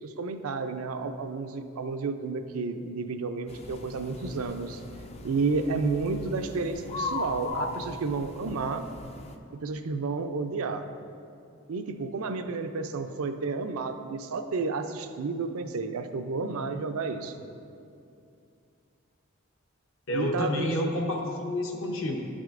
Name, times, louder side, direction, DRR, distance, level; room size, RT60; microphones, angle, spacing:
voice 1, 0.0-4.8 5.2-8.9 9.5-10.9 11.7-17.4 20.1-20.7, right 4 dB, 80° right, 7 dB, 0.4 m, -31 dB
sound 1, 3.5-9.4, left 3 dB, 30° left, 0.3 m, -38 dB
voice 2, 20.1-22.2, left 1 dB, 65° left, 1 dB, 0.9 m, -29 dB
11.0 x 6.2 x 2.5 m, 2.5 s
head